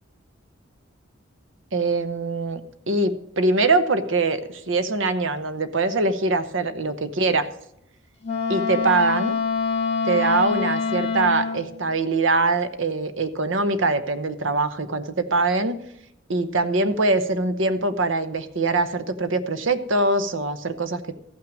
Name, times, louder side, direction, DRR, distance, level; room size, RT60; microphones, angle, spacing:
voice 1, 1.7-2.6 2.9-7.5 8.5-9.3 10.0-15.8 16.3-21.1, right 3 dB, 65° right, 11 dB, 0.9 m, -23 dB
Wind instrument woodwind instrument, 8.2-11.7, left 5 dB, 30° left, 1.8 m, -25 dB
14.0 x 6.0 x 6.3 m, 0.77 s
head